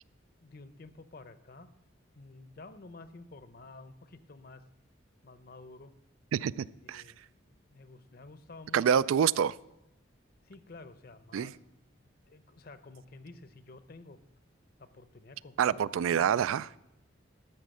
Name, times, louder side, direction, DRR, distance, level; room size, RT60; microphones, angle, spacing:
voice 1, 0.4-1.7 2.2-4.6 5.2-5.9 6.8-9.1 10.4-11.6 12.3-14.2 14.8-16.5, left 3 dB, 50° left, 0.7 m, -51 dB
voice 2, 6.3-7.0 8.7-9.5 11.3-11.5 15.6-16.8, right 8 dB, 90° right, 0.3 m, -27 dB
13.0 x 6.4 x 7.6 m
head